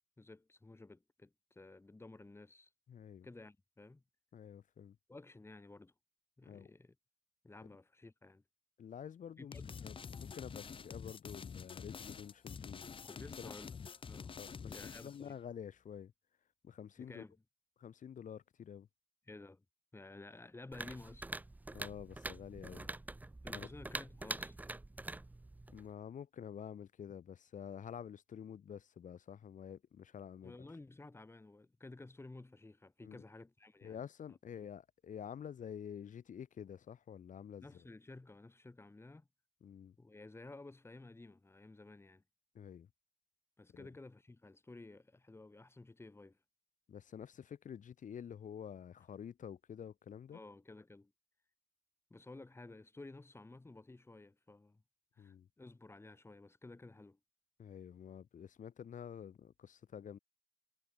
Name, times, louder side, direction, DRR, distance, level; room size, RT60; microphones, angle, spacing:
voice 1, 0.2-2.7 3.2-4.0 5.1-5.9 6.4-6.9 7.4-8.4 9.4-9.9 13.0-13.8 14.0-14.3 14.6-15.3 17.0-17.4 19.3-19.6 19.9-21.3 23.4-24.6 30.4-34.0 34.3-34.7 37.6-39.3 40.0-42.2 43.6-46.4 50.3-51.1 52.1-54.8 55.1-57.2, left 2 dB, 20° left, 1.7 m, -54 dB
voice 2, 2.9-3.3 4.3-5.0 6.5-6.7 8.8-9.5 9.8-12.9 13.2-13.5 14.4-14.7 15.0-16.1 16.6-17.2 17.8-18.9 21.7-22.9 23.5-23.7 25.7-30.6 33.0-33.2 33.8-37.7 39.6-39.9 42.5-42.9 43.7-43.9 46.9-50.4 55.2-55.5 57.6-60.2, left 8 dB, 85° left, 1.2 m, -49 dB
sound 1, 9.5-15.3, left 6 dB, 45° left, 0.5 m, -48 dB
sound 2, 20.7-25.9, right 2 dB, 15° right, 0.4 m, -45 dB
wide cardioid pair, 130°, 13 cm